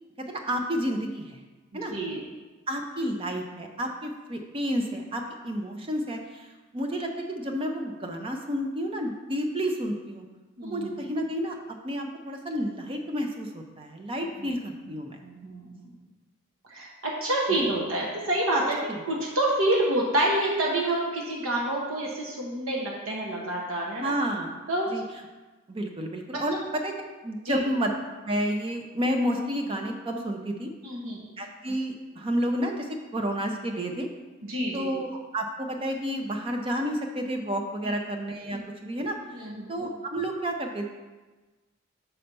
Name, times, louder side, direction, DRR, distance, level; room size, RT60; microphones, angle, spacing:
voice 1, 0.2-1.4 1.7-1.9 2.7-6.5 6.7-10.3 10.7-11.6 11.8-15.2 17.5-17.6 18.9-19.0 24.0-24.5 24.9-25.0 25.7-26.9 27.2-27.9 28.2-30.7 31.4-34.1 34.7-40.9, equal, 25° right, 3 dB, 0.5 m, -30 dB
voice 2, 1.9-2.2 10.6-10.9 15.2-15.7 16.7-24.1 24.7-24.9 26.3-26.6 27.4-27.6 30.8-31.2 34.4-34.9 37.9-38.0 38.5-38.6 39.3-39.7, right 1 dB, 75° right, -3 dB, 1.0 m, -28 dB
5.6 x 4.3 x 5.3 m, 1.2 s
head